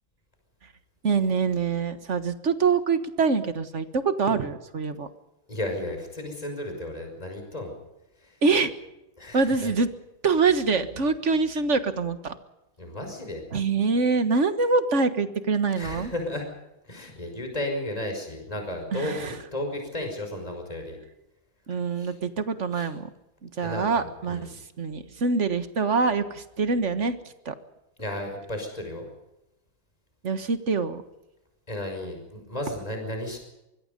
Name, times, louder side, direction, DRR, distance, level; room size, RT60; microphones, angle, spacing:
voice 1, 1.0-5.1 8.4-8.7 9.3-9.9 10.2-12.4 13.5-16.1 18.9-19.3 21.7-23.1 23.4-24.5 24.8-27.2 27.4-27.5 30.2-31.0, right 4 dB, 40° right, 10 dB, 1.7 m, -25 dB
voice 2, 5.5-7.7 8.2-8.4 9.2-9.7 12.8-13.5 15.8-16.5 16.8-21.0 21.9-22.1 22.7-22.9 23.6-24.5 28.0-29.1 31.7-33.4, left 1 dB, 15° left, 4 dB, 5.7 m, -34 dB
24.5 x 22.5 x 5.4 m, 0.92 s
omnidirectional pair, 2.2 m